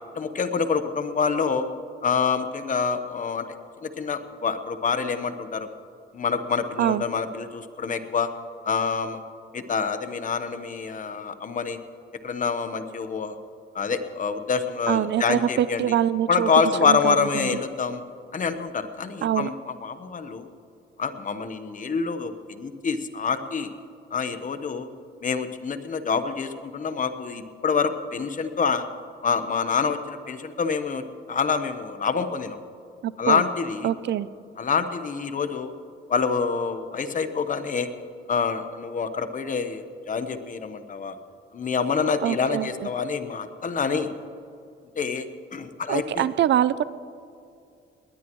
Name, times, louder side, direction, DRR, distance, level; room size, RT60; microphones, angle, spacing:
voice 1, 0.1-1.7 2.0-3.5 3.8-5.7 6.1-8.3 8.6-9.2 9.5-11.8 12.2-13.4 13.7-15.9 16.3-18.0 18.3-20.5 21.0-23.7 24.1-24.9 25.2-28.8 29.2-31.0 31.3-32.6 33.2-33.9 34.6-35.7 36.1-37.9 38.3-41.1 41.5-44.1 45.0-45.3 45.5-46.3, left 5 dB, 40° left, 9 dB, 1.1 m, -26 dB
voice 2, 14.9-16.5 16.8-17.5 19.2-19.5 33.0-33.4 33.8-34.3 42.2-42.9 45.9-46.8, right 11 dB, 60° right, 16 dB, 0.5 m, -24 dB
20.0 x 19.5 x 3.1 m, 2.4 s
cardioid pair, 105°, 21 cm